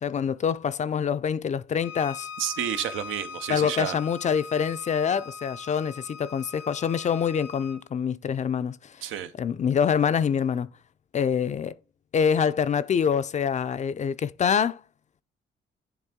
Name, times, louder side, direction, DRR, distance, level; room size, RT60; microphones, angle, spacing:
voice 1, 0.0-2.3 3.5-8.9 9.4-10.7 11.1-11.8 12.1-14.8, left 7 dB, 35° left, 0.4 m, -25 dB
Bowed string instrument, 1.8-7.8, left 5 dB, 80° left, 1.1 m, -41 dB
voice 2, 2.4-4.0 9.0-9.3, right 10 dB, 90° right, 0.7 m, -30 dB
10.0 x 3.6 x 3.6 m
cardioid pair, 90°, 20 cm